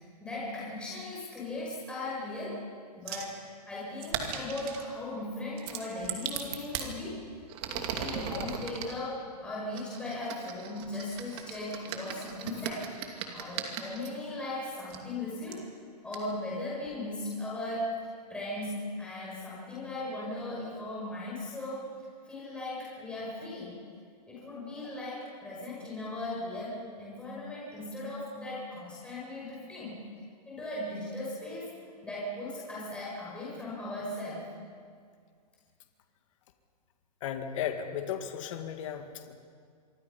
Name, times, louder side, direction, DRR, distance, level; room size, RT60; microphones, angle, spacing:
voice 1, 0.0-2.6 3.0-7.2 7.7-12.9 13.3-15.6 16.0-18.0 18.3-23.7 24.3-30.0 30.5-31.8 32.0-34.5, left 1 dB, 5° left, -7 dB, 6.1 m, -38 dB
sound 1, 3.1-3.3 4.0-4.9 5.6-6.9 7.5-8.9 9.7-14.1 14.9-15.0 15.5-15.6 16.1-16.2, right 8 dB, 35° right, 2.5 m, -37 dB
voice 2, 37.2-39.4, left 9 dB, 50° left, 6 dB, 2.0 m, -35 dB
25.5 x 25.0 x 5.6 m, 2.1 s
hypercardioid pair, 160°, 21 cm